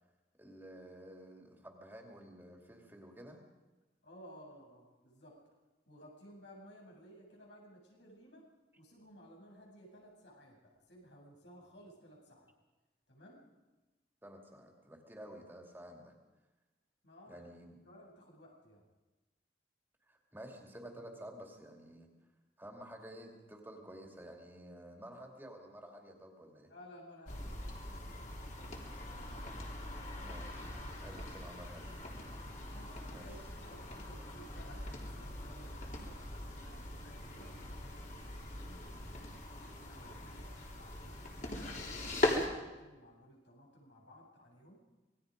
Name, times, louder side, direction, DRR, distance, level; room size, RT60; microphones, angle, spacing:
voice 1, 0.4-3.4 14.2-16.1 17.3-17.8 20.1-22.1 22.6-26.7 30.2-32.0 33.1-33.3 36.2-36.3, right 1 dB, 10° right, 1 dB, 2.6 m, -51 dB
voice 2, 4.0-5.6 5.9-8.4 8.8-12.5 13.1-13.4 17.0-17.5 17.8-18.8 26.7-29.2 32.7-40.5 40.7-44.8, equal, 85° left, -1 dB, 7.9 m, -57 dB
sound 1, 27.3-42.5, left 1 dB, 45° left, 3.6 m, -41 dB
26.5 x 20.5 x 5.2 m, 1.2 s
head